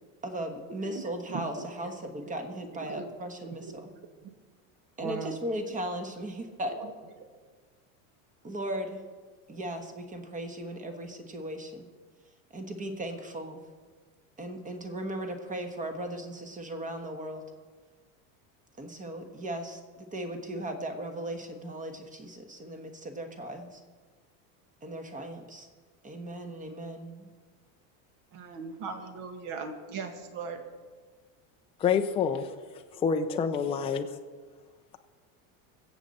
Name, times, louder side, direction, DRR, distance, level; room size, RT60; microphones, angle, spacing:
voice 1, 0.2-3.9 5.0-6.7 8.4-9.0 9.5-11.8 12.5-13.6 14.4-17.4 18.8-23.8 24.8-25.7 26.0-27.3, right 1 dB, 20° right, 6 dB, 1.3 m, -37 dB
voice 2, 1.3-1.9 2.2-2.4 2.7-3.1 3.6-4.3 5.0-5.4 6.6-6.9 28.3-30.6, right 5 dB, 50° right, 6 dB, 1.8 m, -39 dB
voice 3, 31.8-32.5 33.0-34.1, left 6 dB, 15° left, 5 dB, 0.5 m, -27 dB
23.5 x 7.9 x 4.2 m, 1.5 s
supercardioid pair, 150°, 42 cm